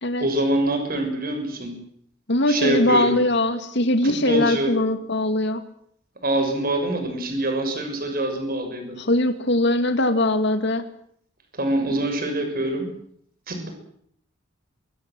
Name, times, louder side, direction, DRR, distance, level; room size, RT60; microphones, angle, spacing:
voice 1, 0.2-1.8 2.5-3.2 4.0-4.7 6.2-9.0 11.5-12.9 13.5-13.7, right 1 dB, 50° right, 5 dB, 6.5 m, -25 dB
voice 2, 2.3-5.6 9.0-10.8, left 1 dB, 60° left, 8 dB, 2.3 m, -21 dB
23.5 x 23.0 x 7.7 m, 0.65 s
head